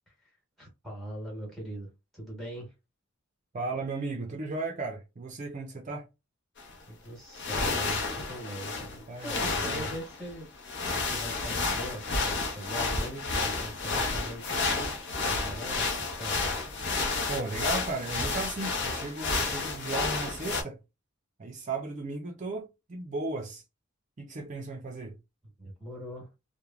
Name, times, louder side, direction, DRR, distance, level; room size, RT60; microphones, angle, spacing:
voice 1, 0.6-2.7 6.9-8.7 9.2-10.5 10.9-16.6 25.6-26.3, right 1 dB, ahead, 1.1 m, -41 dB
voice 2, 3.5-6.1 8.8-9.9 17.3-20.8 21.4-23.6 24.2-25.2, right 3 dB, 35° right, 0.4 m, -36 dB
sound 1, 6.6-6.7 7.3-20.6, left 3 dB, 55° left, 0.7 m, -31 dB
3.1 x 2.1 x 2.3 m
head